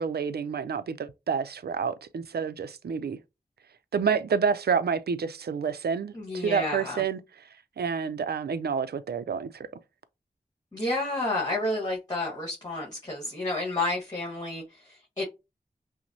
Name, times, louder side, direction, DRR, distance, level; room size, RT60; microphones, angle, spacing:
voice 1, 0.0-3.2 3.9-7.2 7.8-9.7, right 6 dB, 90° right, 0.4 m, -28 dB
voice 2, 6.1-7.0 10.7-15.2, left 2 dB, 25° left, 1.3 m, -30 dB
5.8 x 2.1 x 2.7 m
wide cardioid pair, 65°, 16 cm